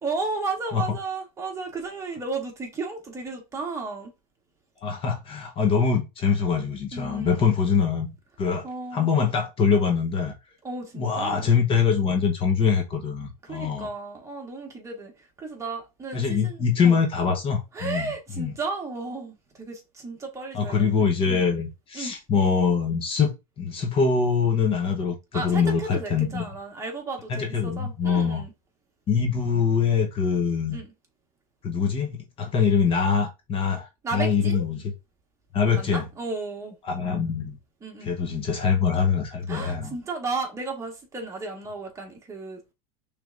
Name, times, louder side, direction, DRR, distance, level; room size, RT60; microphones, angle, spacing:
voice 1, 0.0-4.1 6.9-7.5 8.6-9.1 10.6-11.5 13.4-15.1 15.4-17.0 17.7-21.4 21.9-22.1 25.3-28.5 30.7-30.9 34.0-34.6 35.7-36.7 37.8-38.1 39.5-42.7, right 3 dB, 15° right, 1.6 m, -34 dB
voice 2, 4.8-8.1 8.4-8.7 8.9-10.3 11.0-13.9 16.1-18.1 18.4-18.5 20.5-26.5 27.3-28.4 29.1-30.8 31.6-34.9 35.5-36.0 36.8-37.6 38.0-39.9, left 6 dB, 30° left, 0.9 m, -24 dB
6.0 x 3.4 x 2.6 m
supercardioid pair, 135°, 18 cm